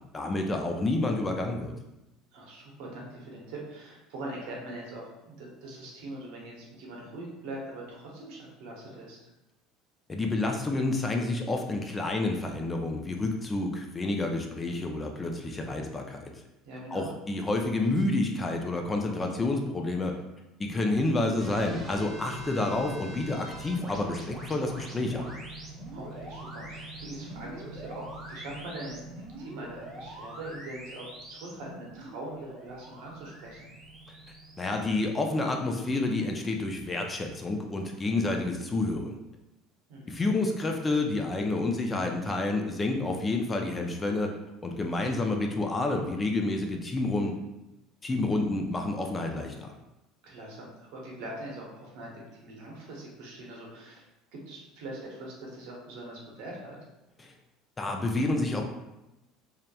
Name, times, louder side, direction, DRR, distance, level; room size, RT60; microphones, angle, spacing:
voice 1, 0.1-1.7 10.1-16.3 16.9-20.1 20.6-25.3 34.6-39.2 40.1-44.4 44.6-47.4 48.0-49.7 57.2-57.3 57.8-58.6, left 2 dB, 20° left, 3 dB, 0.4 m, -29 dB
voice 2, 2.3-9.2 16.6-17.1 25.9-33.7 39.9-40.2 44.9-45.3 50.2-54.0 54.3-56.8, right 1 dB, 75° right, -2 dB, 0.8 m, -42 dB
sound 1, 21.4-35.9, right 1 dB, 25° right, 0.8 m, -44 dB
2.8 x 2.1 x 2.3 m, 0.94 s
supercardioid pair, 100°, 0 cm